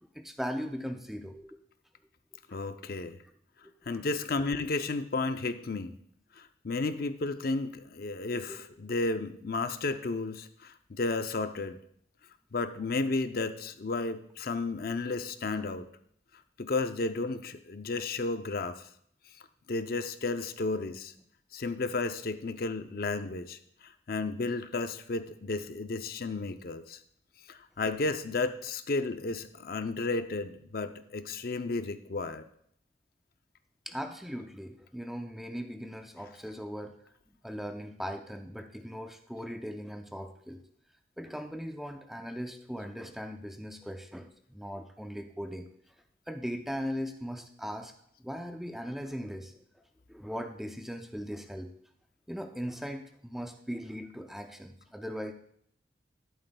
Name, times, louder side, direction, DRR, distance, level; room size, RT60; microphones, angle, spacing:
voice 1, 0.0-1.6 2.5-2.6 3.9-4.0 8.5-8.6 33.9-37.0 37.4-40.6 41.2-45.7 46.3-47.9 48.2-49.6 50.1-51.7 52.3-55.3, equal, ahead, 5 dB, 0.4 m, -39 dB
voice 2, 2.5-3.2 3.9-6.0 6.4-11.8 12.5-15.9 16.6-18.9 19.7-21.1 21.5-27.0 27.5-32.4, left 3 dB, 50° left, 10 dB, 0.5 m, -33 dB
13.0 x 11.0 x 2.3 m, 0.67 s
head